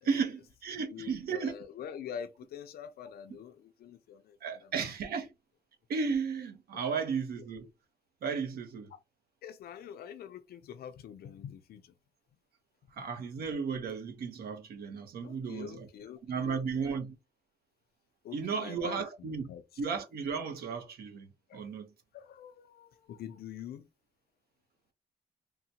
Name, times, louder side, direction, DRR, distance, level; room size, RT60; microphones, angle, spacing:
voice 1, 0.0-1.5 4.4-5.3 5.9-7.7 8.2-8.9 13.0-15.9 16.3-17.1 18.3-19.5 19.8-21.9, right 5 dB, 90° right, 0.9 m, -34 dB
voice 2, 0.7-4.9 6.7-7.4 8.9-9.0 9.4-11.9 13.0-13.1 15.2-17.0 18.2-19.8 21.5-21.6 22.1-23.9, left 8 dB, 90° left, 0.5 m, -46 dB
3.8 x 2.1 x 2.8 m
cardioid pair, 120°, 16 cm